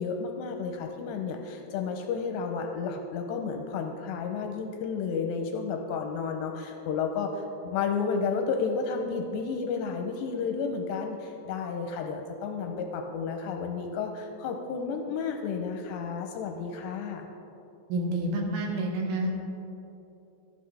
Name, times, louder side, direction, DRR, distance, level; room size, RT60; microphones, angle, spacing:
voice 1, 0.0-17.3, left 5 dB, 85° left, 4 dB, 2.5 m, -32 dB
voice 2, 17.9-19.4, right 1 dB, 80° right, 1 dB, 3.6 m, -29 dB
12.5 x 10.0 x 3.3 m, 2.9 s
omnidirectional pair, 5.2 m